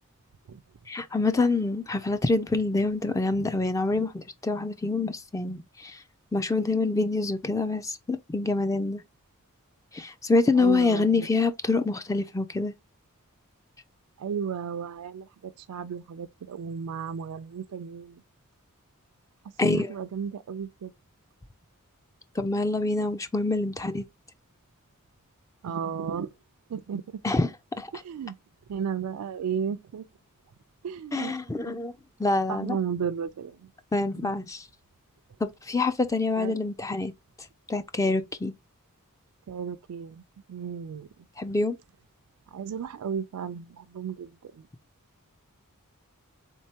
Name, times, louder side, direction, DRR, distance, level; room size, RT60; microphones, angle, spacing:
voice 1, 0.9-6.0 6.3-9.0 9.9-12.7 19.6-19.9 22.4-24.0 27.2-27.5 27.8-27.9 31.1-31.9 32.2-32.8 33.9-34.6 35.4-37.1 37.7-38.5 41.4-41.8, left 3 dB, 15° left, 0.3 m, -26 dB
voice 2, 10.5-11.3 14.2-18.2 19.4-20.9 25.6-26.3 26.7-27.2 27.9-28.4 28.7-30.1 30.8-31.4 31.7-31.8 32.5-33.7 34.1-34.3 36.4-36.5 39.5-40.2 40.5-41.3 42.5-44.7, right 7 dB, 85° right, 0.4 m, -34 dB
4.5 x 3.6 x 2.7 m
head